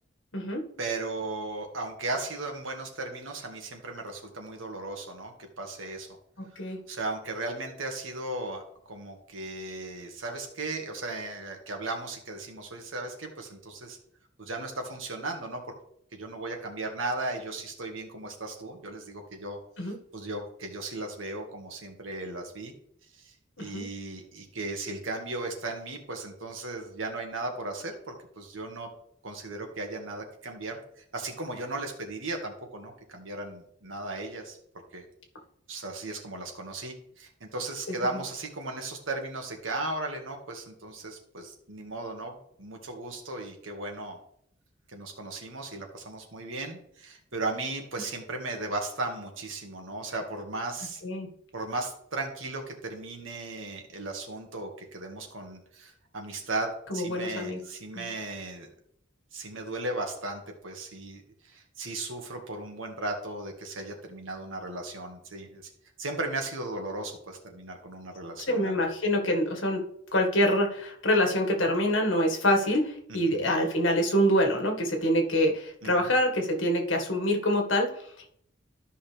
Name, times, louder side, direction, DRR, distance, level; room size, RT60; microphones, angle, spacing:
voice 1, 0.8-6.1 6.9-8.6 8.9-14.0 14.4-15.6 16.1-22.7 23.1-28.9 29.2-35.0 35.7-44.2 44.9-51.0 51.5-58.7 59.3-65.7 66.0-68.8 73.1-73.4 75.8-76.1, right 2 dB, 85° right, 3 dB, 1.9 m, -36 dB
voice 2, 56.9-57.6 57.9-58.1 68.5-69.8 70.1-77.9, equal, 75° left, 3 dB, 1.8 m, -25 dB
13.0 x 5.6 x 3.4 m, 0.68 s
head